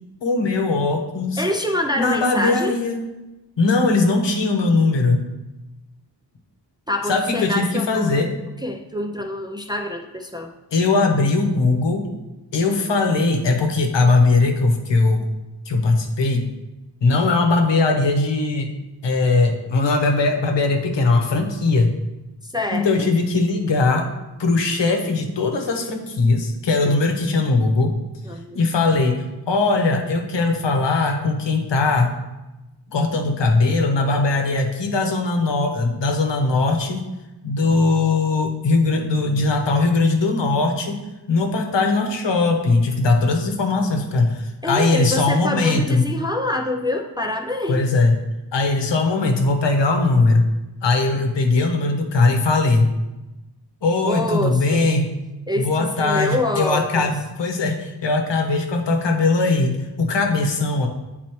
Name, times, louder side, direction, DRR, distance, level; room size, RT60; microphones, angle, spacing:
voice 1, 0.2-1.4 1.9-3.0 3.6-5.2 7.1-8.3 10.7-12.1 12.5-15.2 15.7-16.5 17.0-18.7 19.0-21.9 22.7-24.1 24.4-27.9 28.5-32.1 32.9-37.0 37.4-41.0 41.3-46.1 47.7-48.1 48.5-50.5 50.8-52.9 53.8-55.1 55.6-60.9, left 3 dB, 90° left, 4 dB, 1.0 m, -20 dB
voice 2, 1.4-2.7 6.9-8.3 8.6-10.5 22.4-23.1 26.9-27.0 28.2-28.6 44.6-47.8 54.0-54.9 55.5-57.1, left 1 dB, 10° right, 2 dB, 0.3 m, -26 dB
9.1 x 4.1 x 3.0 m, 1.0 s
wide cardioid pair, 175°, 42 cm